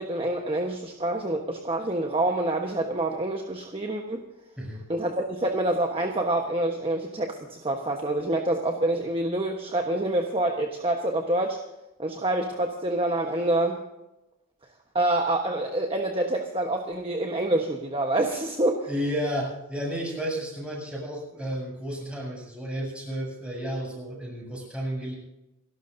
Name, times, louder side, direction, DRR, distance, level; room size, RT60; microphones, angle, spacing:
voice 1, 0.0-4.2 4.9-11.6 12.0-13.8 14.9-18.9, right 1 dB, 25° right, 2 dB, 1.2 m, -27 dB
voice 2, 18.9-25.1, equal, 5° right, -3 dB, 7.3 m, -32 dB
28.5 x 12.5 x 2.7 m, 0.92 s
head